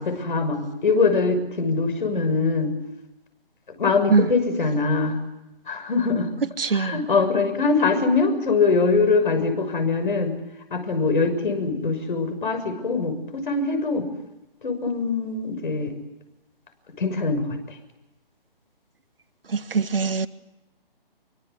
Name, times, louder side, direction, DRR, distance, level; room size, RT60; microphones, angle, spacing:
voice 1, 0.0-2.7 3.8-5.2 5.7-6.3 6.7-10.3 10.7-14.1 14.6-15.9 17.0-17.4, left 4 dB, 60° left, 8 dB, 6.5 m, -23 dB
voice 2, 6.6-7.0 19.5-20.3, right 5 dB, 75° right, 11 dB, 1.7 m, -22 dB
25.0 x 23.5 x 8.3 m, 0.97 s
figure-of-eight pair, 150°, 29 cm